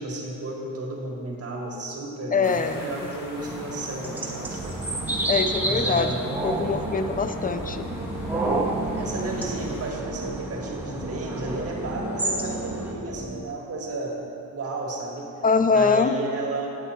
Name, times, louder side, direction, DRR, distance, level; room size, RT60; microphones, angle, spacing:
voice 1, 0.0-4.9 5.6-6.3 9.0-14.2 14.5-15.3 15.7-16.7, right 2 dB, 45° right, 0 dB, 1.7 m, -33 dB
voice 2, 2.3-3.2 5.3-6.2 6.4-7.9 15.4-16.2, left 5 dB, 25° left, 10 dB, 0.4 m, -23 dB
sound 1, 2.4-9.9, left 1 dB, 65° left, 1.5 m, -43 dB
sound 2, 3.3-12.9, right 2 dB, 5° right, 1.3 m, -30 dB
sound 3, 4.4-13.4, right 1 dB, 25° right, 1.6 m, -36 dB
9.2 x 8.3 x 4.3 m, 2.7 s
cardioid pair, 95°, 34 cm